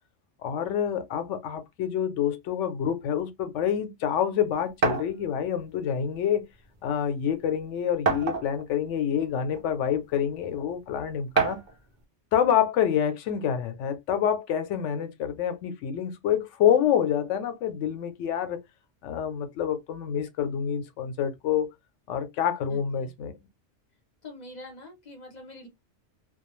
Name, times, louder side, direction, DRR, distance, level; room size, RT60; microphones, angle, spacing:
voice 1, 0.4-6.5 6.8-11.6 12.3-18.6 19.0-21.7 22.1-23.3, left 9 dB, 80° left, 0.9 m, -27 dB
sound 1, 4.8-5.1 6.2-6.3 6.8-6.9 8.1-8.7 9.5-9.6 11.4-11.7, right 5 dB, 50° right, 0.7 m, -26 dB
voice 2, 22.7-23.1 24.2-25.7, left 1 dB, 40° left, 0.9 m, -45 dB
2.3 x 2.2 x 2.9 m
omnidirectional pair, 1.2 m